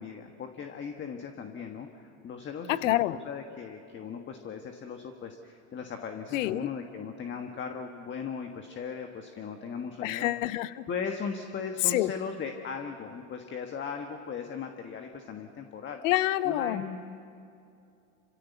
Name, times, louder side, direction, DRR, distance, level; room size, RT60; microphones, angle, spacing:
voice 1, 0.0-10.3 10.9-16.0 16.4-17.0, left 6 dB, 30° left, 5 dB, 1.5 m, -38 dB
voice 2, 2.7-3.2 6.3-6.7 10.0-10.8 11.8-12.1 16.0-16.8, left 16 dB, 70° left, 17 dB, 0.9 m, -27 dB
27.0 x 16.0 x 8.2 m, 2.7 s
hypercardioid pair, 110°, 40 cm